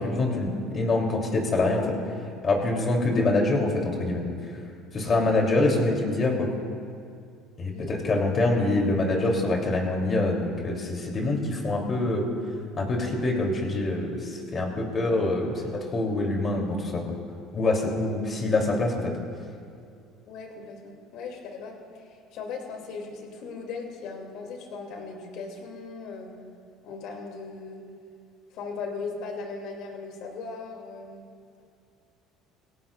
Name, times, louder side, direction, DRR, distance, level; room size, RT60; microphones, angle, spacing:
voice 1, 0.0-1.9 2.4-4.2 4.9-6.5 7.6-12.2 12.8-17.0 17.5-19.1, left 2 dB, 35° left, 0 dB, 3.2 m, -25 dB
voice 2, 7.7-8.1 15.6-15.7 20.3-26.3 26.8-27.8 28.5-31.2, left 4 dB, 70° left, 2 dB, 2.6 m, -38 dB
21.5 x 17.0 x 2.5 m, 2.4 s
supercardioid pair, 100°, 0 cm